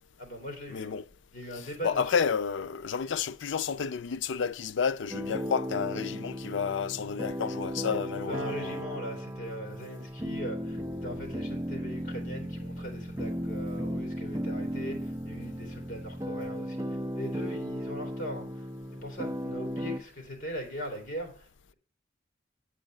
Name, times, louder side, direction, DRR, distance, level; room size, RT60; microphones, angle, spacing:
voice 1, 0.2-0.9 1.3-2.3 7.9-8.0 8.3-18.7 19.0-21.7, equal, 45° left, 3.1 m, -40 dB
voice 2, 0.7-1.0 1.5-8.8, left 6 dB, 80° left, 0.4 m, -31 dB
sound 1, 5.1-20.0, equal, 15° right, 0.5 m, -35 dB
8.8 x 5.1 x 7.7 m
head